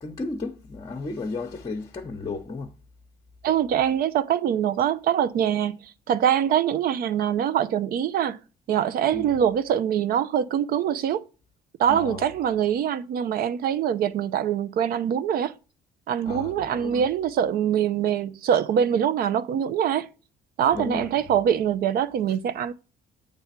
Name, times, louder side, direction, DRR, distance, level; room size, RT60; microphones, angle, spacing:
voice 1, 0.0-2.7 9.1-9.3 11.9-12.3 16.3-17.0 20.7-21.3, left 3 dB, 25° left, 0.9 m, -34 dB
voice 2, 3.4-8.4 8.7-11.3 11.8-15.5 16.1-20.1 20.6-22.7, right 9 dB, 60° right, 0.6 m, -24 dB
8.0 x 3.4 x 5.7 m
cardioid pair, 110°, 17 cm